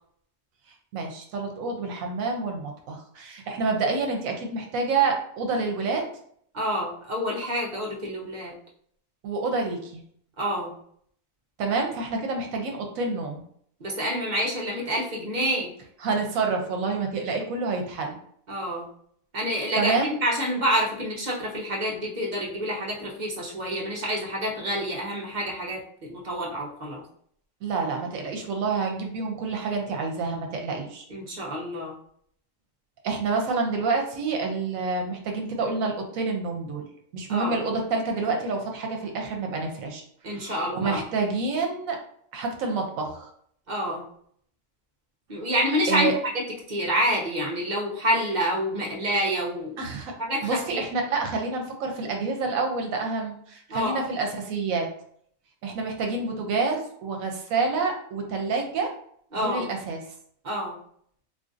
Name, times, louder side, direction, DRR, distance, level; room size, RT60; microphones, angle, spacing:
voice 1, 0.9-6.0 9.2-10.0 11.6-13.4 16.0-18.2 19.8-20.1 27.6-31.1 33.0-36.9 37.1-42.0 42.3-43.3 45.9-46.1 49.8-50.1 50.4-54.9 55.6-58.9 59.4-60.0, right 4 dB, 85° right, 3 dB, 1.0 m, -28 dB
voice 2, 6.5-8.5 10.4-10.7 13.8-15.7 18.5-18.9 19.3-27.0 31.1-32.0 37.3-37.6 40.2-41.0 43.7-44.0 45.3-46.1 46.7-49.8 50.2-50.8 53.7-54.0 59.3-59.7 60.4-60.8, equal, 45° right, -3 dB, 0.7 m, -28 dB
3.8 x 2.5 x 2.5 m, 0.64 s
omnidirectional pair, 1.4 m